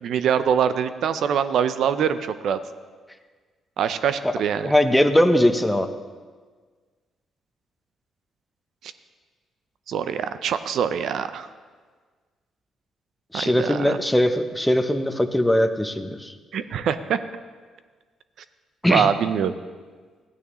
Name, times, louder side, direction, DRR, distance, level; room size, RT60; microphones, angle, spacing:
voice 1, 0.0-2.6 3.8-4.7 9.9-11.5 13.3-14.0 16.5-17.2 18.9-19.5, right 8 dB, 70° right, 12 dB, 0.5 m, -24 dB
voice 2, 4.6-5.9 13.3-16.3 18.8-19.1, left 1 dB, 5° left, 7 dB, 0.8 m, -20 dB
14.0 x 9.5 x 3.1 m, 1.5 s
supercardioid pair, 70°, 0 cm